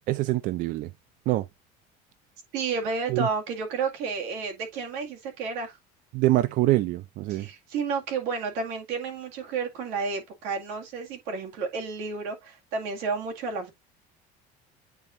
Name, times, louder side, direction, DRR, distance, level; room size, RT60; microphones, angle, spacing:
voice 1, 0.1-0.9 1.3-1.4 3.1-3.3 6.1-7.5, right 17 dB, 50° right, 0.4 m, -24 dB
voice 2, 2.5-5.8 7.3-13.7, right 4 dB, 70° right, 2.1 m, -31 dB
8.9 x 4.4 x 2.6 m
cardioid pair, 165°, 18 cm